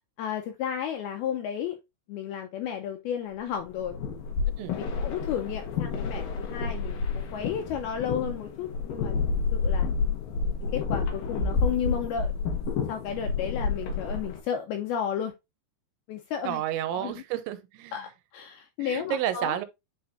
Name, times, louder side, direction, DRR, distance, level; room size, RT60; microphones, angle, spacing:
voice 1, 0.2-1.8 2.1-4.0 5.0-9.1 9.5-9.9 10.6-12.3 12.9-15.3 16.1-16.6 16.9-17.2 17.9-19.6, left 8 dB, 85° left, 2.2 m, -33 dB
sound 1, 3.6-14.4, left 4 dB, 65° left, 2.6 m, -29 dB
voice 2, 16.4-18.1 18.8-19.7, right 11 dB, 85° right, 3.1 m, -31 dB
9.2 x 4.4 x 2.6 m
omnidirectional pair, 5.2 m